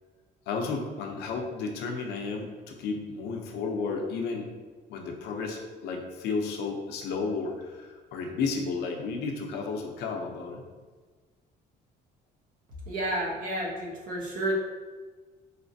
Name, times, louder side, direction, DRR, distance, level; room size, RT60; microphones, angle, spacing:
voice 1, 0.5-4.5 4.9-10.6, left 4 dB, 80° left, 2 dB, 0.7 m, -32 dB
voice 2, 12.9-14.5, right 1 dB, 55° right, -2 dB, 1.1 m, -31 dB
4.2 x 3.2 x 2.7 m, 1.4 s
cardioid pair, 110°, 17 cm